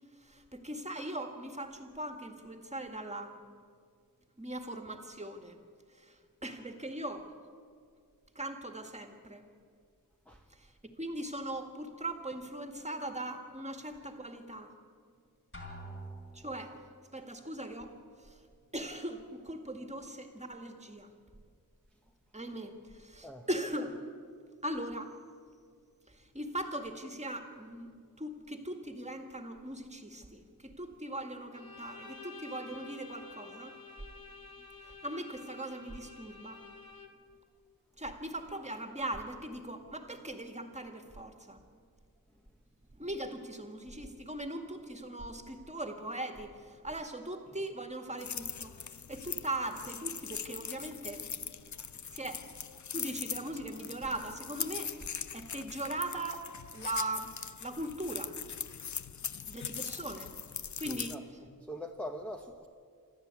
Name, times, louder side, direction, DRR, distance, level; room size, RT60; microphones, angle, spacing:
voice 1, 0.2-3.3 4.4-5.6 6.0-6.2 6.4-7.3 8.4-9.5 10.5-10.7 11.0-14.7 16.3-16.8 17.1-18.4 18.7-21.1 22.3-24.0 24.6-25.1 26.1-33.8 34.8-36.6 38.0-41.6 42.9-51.5 52.1-52.5 52.9-54.9 55.3-56.5 56.7-57.3 57.6-58.4 59.5-60.3 60.8-61.5, right 1 dB, 20° right, 5 dB, 2.0 m, -40 dB
Drum, 15.5-16.7, right 1 dB, 35° left, 3.9 m, -46 dB
voice 2, 15.8-16.2 23.2-23.5 51.8-51.9 60.9-61.2 61.6-62.7, left 1 dB, 5° left, 0 dB, 1.1 m, -43 dB
Bowed string instrument, 31.5-37.4, left 4 dB, 90° left, 1.8 m, -50 dB
sound 1, 48.2-61.2, left 7 dB, 55° left, 0.7 m, -41 dB
26.5 x 13.0 x 8.4 m, 2.2 s
wide cardioid pair, 110°, 35 cm